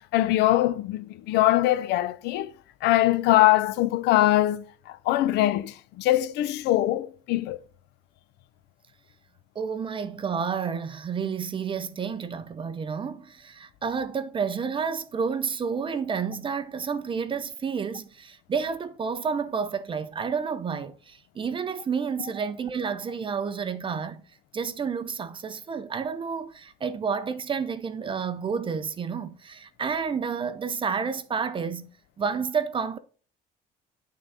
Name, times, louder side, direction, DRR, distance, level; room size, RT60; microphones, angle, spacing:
voice 1, 0.1-2.5 2.8-7.6, left 15 dB, 80° left, 0.5 m, -22 dB
voice 2, 9.6-24.2 24.5-31.9 32.2-33.0, right 6 dB, 30° right, 0.5 m, -30 dB
9.0 x 3.7 x 3.3 m
cardioid pair, 110°, 17 cm